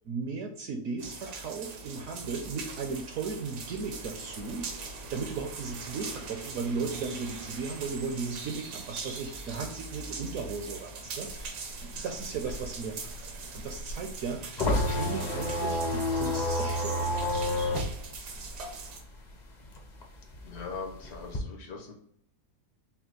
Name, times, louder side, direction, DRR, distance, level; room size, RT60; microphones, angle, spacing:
voice 1, 0.0-13.3 13.5-17.3, right 4 dB, 70° right, 4 dB, 0.9 m, -36 dB
sound 1, 1.0-19.0, right 3 dB, 85° right, 1.4 m, -41 dB
sound 2, 12.2-19.3 19.6-21.4, left 1 dB, 45° left, 0.5 m, -30 dB
voice 2, 20.4-21.9, left 4 dB, 70° left, 2 dB, 1.4 m, -40 dB
5.6 x 2.3 x 2.9 m, 0.68 s
omnidirectional pair, 1.7 m